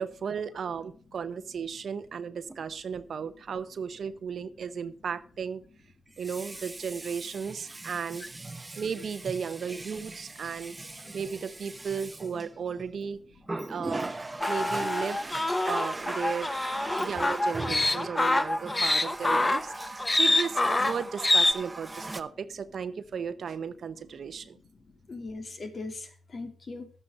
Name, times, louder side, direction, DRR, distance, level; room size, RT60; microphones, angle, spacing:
voice 1, 0.0-5.6 6.2-8.2 8.8-10.7 11.1-13.2 13.7-14.1 14.5-15.2 15.7-16.6 17.0-24.6, right 6 dB, 65° right, 13 dB, 0.8 m, -35 dB
Water tap faucet, 2.5-2.6 6.1-12.9 13.4-22.2, right 2 dB, 25° right, 0.9 m, -39 dB
voice 2, 10.8-11.1 13.4-13.6 14.3-14.4 18.6-18.7 20.1-20.2 24.5-26.9, left 3 dB, 50° left, 5 dB, 2.6 m, -41 dB
sound 1, 14.4-21.5, left 2 dB, 25° left, 1.0 m, -26 dB
11.5 x 8.8 x 5.6 m, 0.40 s
cardioid pair, 60°, 0 cm